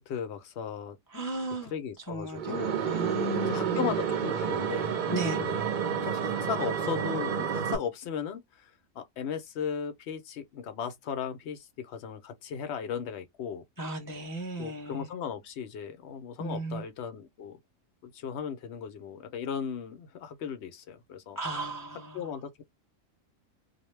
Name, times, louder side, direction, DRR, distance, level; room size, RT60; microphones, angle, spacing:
voice 1, 0.0-1.0 1.7-2.7 3.4-5.0 5.3-5.6 6.0-8.7 9.0-13.6 14.6-17.6 18.0-21.4 22.1-22.6, left 7 dB, 60° left, 0.8 m, -36 dB
voice 2, 1.1-4.0 5.1-5.5 13.8-15.1 16.4-16.8 21.4-22.3, right 1 dB, 35° left, 0.3 m, -35 dB
sound 1, 2.4-7.8, right 7 dB, 60° right, 0.5 m, -30 dB
2.6 x 2.1 x 3.1 m
omnidirectional pair, 1.4 m